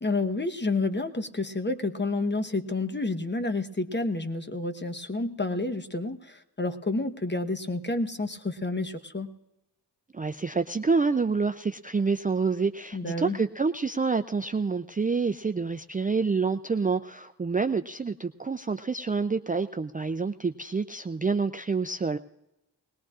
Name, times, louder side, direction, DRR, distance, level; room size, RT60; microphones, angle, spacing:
voice 1, 0.0-9.3 12.9-13.4, left 2 dB, 25° left, 8 dB, 1.0 m, -29 dB
voice 2, 10.1-22.2, right 4 dB, 20° right, 8 dB, 0.4 m, -27 dB
20.5 x 18.5 x 2.4 m, 0.91 s
cardioid pair, 55°, 41 cm